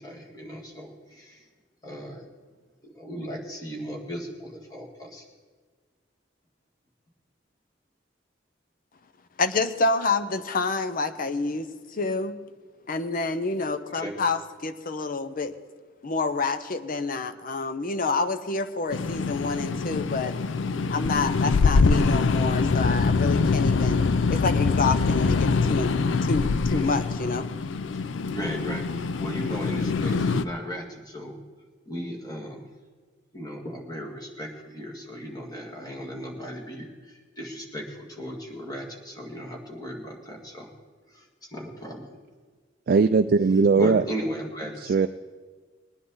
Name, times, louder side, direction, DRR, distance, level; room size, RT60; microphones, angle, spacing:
voice 1, 0.0-1.5 1.8-2.3 2.8-5.2 14.0-14.1 23.8-23.9 26.7-27.1 28.3-31.4 31.9-32.7 33.3-40.7 41.1-41.3 41.5-42.1 43.8-45.0, equal, 20° left, -1 dB, 2.2 m, -36 dB
voice 2, 9.4-12.4 12.9-15.5 16.0-20.4 20.9-25.9 26.2-27.5, left 3 dB, 50° left, 10 dB, 0.7 m, -28 dB
sound 1, 18.9-30.4, left 4 dB, 80° left, 0.5 m, -24 dB
voice 3, 42.9-44.0 44.8-45.1, right 4 dB, 55° right, 9 dB, 0.4 m, -19 dB
20.5 x 10.0 x 4.0 m, 1.5 s
head